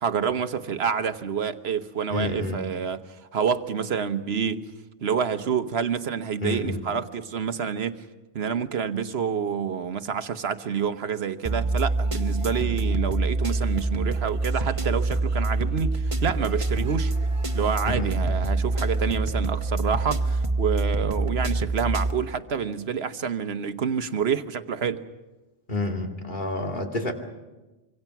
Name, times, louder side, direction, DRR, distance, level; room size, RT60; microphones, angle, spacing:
voice 1, 0.0-4.7 5.0-8.0 8.3-17.1 17.5-25.0, right 7 dB, 70° right, 10 dB, 1.3 m, -28 dB
voice 2, 2.1-2.6 6.4-6.8 18.0-18.1 25.7-27.1, left 2 dB, 45° left, 2 dB, 2.6 m, -29 dB
sound 1, 11.4-22.1, right 2 dB, 30° right, 1.1 m, -26 dB
26.0 x 25.0 x 6.0 m, 1.1 s
omnidirectional pair, 1.1 m